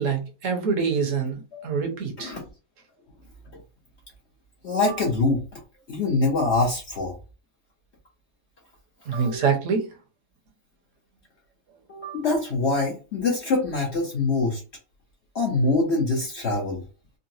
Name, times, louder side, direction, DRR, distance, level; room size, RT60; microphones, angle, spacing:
voice 1, 0.0-2.4 9.0-10.0, right 5 dB, 65° right, 1.2 m, -25 dB
voice 2, 4.6-5.6 5.9-7.2 9.1-9.4 11.9-14.6 15.3-16.8, left 3 dB, 55° left, 1.0 m, -24 dB
3.9 x 2.1 x 2.6 m
omnidirectional pair, 1.5 m